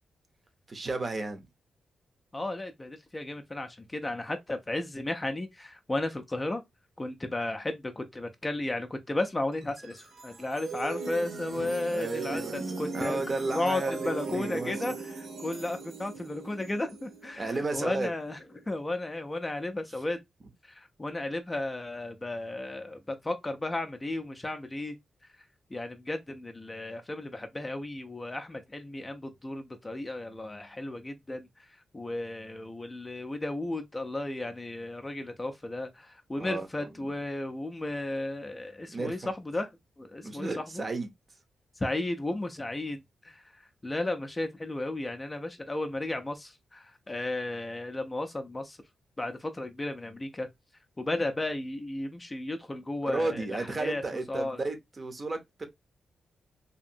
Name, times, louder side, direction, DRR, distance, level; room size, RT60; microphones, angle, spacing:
voice 1, 0.7-1.5 11.6-15.0 17.4-18.1 36.4-37.1 38.9-39.2 40.2-41.1 53.1-55.7, right 3 dB, 35° right, 0.7 m, -33 dB
voice 2, 2.3-6.6 7.0-13.2 13.5-18.4 18.7-20.2 20.6-25.0 25.7-31.5 31.9-39.7 40.0-40.5 40.7-40.8 41.8-43.4 43.8-48.8 49.2-50.5 51.0-54.0 54.3-54.6, left 2 dB, 20° left, 0.4 m, -34 dB
sound 1, 9.5-18.8, right 4 dB, 75° right, 1.1 m, -39 dB
2.8 x 2.5 x 2.6 m
cardioid pair, 115°, 0 cm